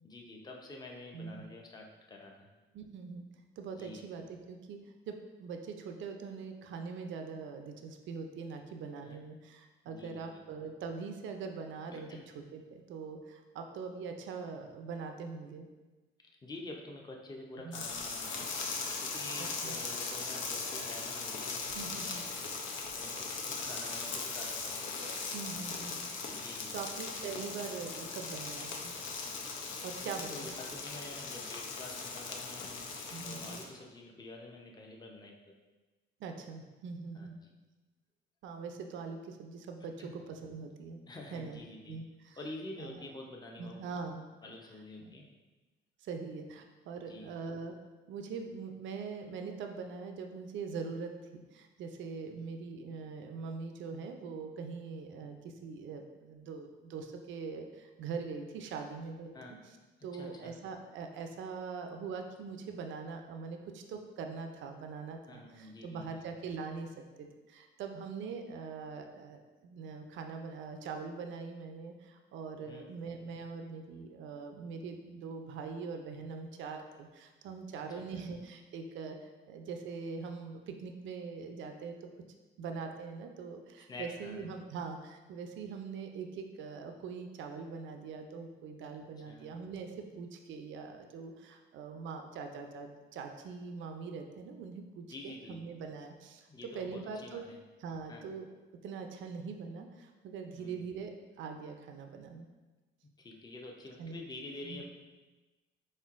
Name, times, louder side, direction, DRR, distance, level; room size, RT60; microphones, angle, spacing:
voice 1, 0.0-2.5 3.7-4.0 9.0-9.2 9.9-10.4 11.9-12.3 16.4-18.5 19.0-22.3 23.0-24.7 26.3-26.9 30.0-32.9 33.2-35.3 37.1-37.3 39.8-40.1 41.1-42.0 42.4-43.8 44.4-45.3 47.1-47.3 59.3-59.5 60.1-60.6 65.3-66.3 72.7-72.9 77.7-77.8 78.2-78.4 83.9-84.5 89.3-89.5 95.1-95.6 96.5-97.6 98.1-98.3 100.6-100.8 103.2-104.9, left 2 dB, 20° left, 0 dB, 0.6 m, -48 dB
voice 2, 1.1-1.4 2.7-3.3 3.6-4.8 5.1-12.1 12.3-15.7 17.6-17.8 19.6-19.7 21.7-22.2 25.3-26.1 26.7-28.9 29.8-30.5 33.1-33.6 36.2-37.4 38.4-41.0 41.3-41.6 41.9-42.4 42.8-43.1 43.6-44.2 45.0-45.1 46.0-47.8 48.1-59.3 60.0-81.9 82.6-97.4 97.8-98.4 98.8-101.1 101.4-102.5 104.0-104.2 104.6-104.8, right 5 dB, 75° right, 5 dB, 0.5 m, -42 dB
sound 1, 17.7-33.7, left 4 dB, 80° left, 0.6 m, -39 dB
4.3 x 3.7 x 2.4 m, 1.2 s
cardioid pair, 90°, 20 cm